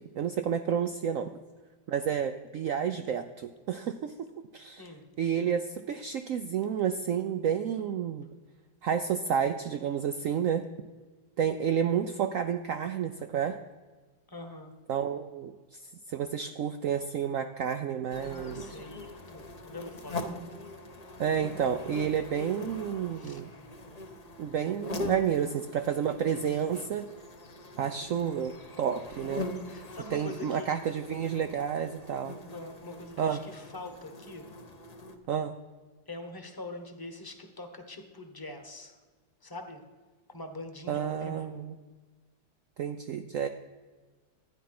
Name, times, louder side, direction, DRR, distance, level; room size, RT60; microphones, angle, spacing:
voice 1, 0.1-1.4 1.9-4.1 4.5-4.9 5.2-8.3 8.8-10.6 11.4-13.6 14.9-18.6 21.2-23.5 24.4-27.1 27.8-29.5 30.1-32.4 33.2-33.4 35.3-35.5 40.9-41.8 42.8-43.5, right 8 dB, 65° right, 8 dB, 0.8 m, -30 dB
voice 2, 14.3-14.7 18.2-20.4 23.1-23.4 29.7-30.9 32.5-34.5 36.1-39.0 39.4-39.8 40.3-41.6, left 2 dB, 15° left, 6 dB, 1.1 m, -44 dB
sound 1, 18.1-35.2, left 2 dB, 30° left, 0.7 m, -42 dB
13.0 x 9.7 x 5.9 m, 1.4 s
omnidirectional pair, 1.9 m